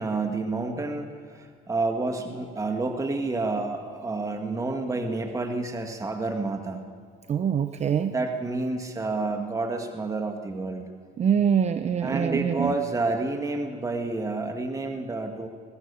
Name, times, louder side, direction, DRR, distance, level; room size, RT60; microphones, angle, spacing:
voice 1, 0.0-6.8 8.1-10.9 12.0-15.5, right 3 dB, 20° right, 4 dB, 1.9 m, -29 dB
voice 2, 7.3-8.1 11.2-12.7, right 8 dB, 40° right, 10 dB, 0.8 m, -24 dB
21.5 x 17.5 x 7.0 m, 2.2 s
cardioid pair, 110°, 17 cm